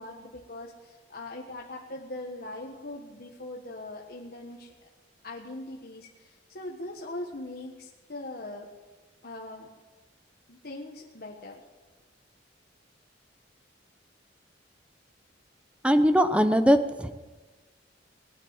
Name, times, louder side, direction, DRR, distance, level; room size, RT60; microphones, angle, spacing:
voice 1, 0.0-4.7 5.2-8.7 9.2-9.7 10.5-11.6, left 2 dB, 55° left, -1 dB, 1.5 m, -41 dB
voice 2, 15.8-17.1, equal, 5° right, 9 dB, 0.8 m, -21 dB
19.5 x 9.8 x 7.6 m, 1.2 s
head